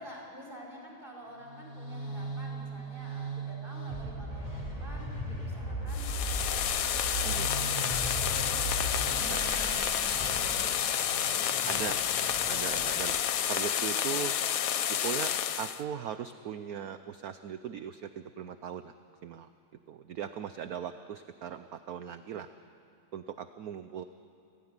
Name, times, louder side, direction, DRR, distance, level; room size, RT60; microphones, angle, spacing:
voice 1, 0.0-12.1 13.4-13.7, equal, 25° right, -1 dB, 5.2 m, -48 dB
sound 1, 1.3-13.2, right 1 dB, 15° left, 3.5 m, -38 dB
sound 2, 5.9-15.8, left 9 dB, 60° left, 0.9 m, -30 dB
Gong, 9.1-13.5, equal, 40° left, 4.7 m, -45 dB
voice 2, 12.5-13.2 13.5-14.4 14.9-18.9 19.2-19.5 19.9-22.5 23.1-24.0, right 8 dB, 65° right, 10 dB, 0.9 m, -38 dB
29.0 x 16.0 x 9.7 m, 2.6 s
omnidirectional pair, 2.3 m